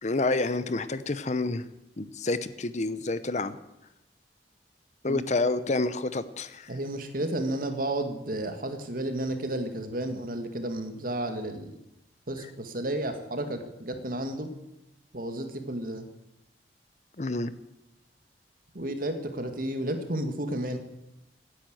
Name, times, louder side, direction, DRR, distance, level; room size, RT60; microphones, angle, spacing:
voice 1, 0.0-1.7 2.0-3.6 5.0-6.7 17.2-17.5, left 2 dB, 40° left, 14 dB, 0.8 m, -28 dB
voice 2, 6.7-11.8 12.3-14.5 15.1-16.1 18.7-20.8, right 1 dB, 55° right, 7 dB, 2.0 m, -32 dB
17.5 x 9.9 x 7.8 m, 0.88 s
head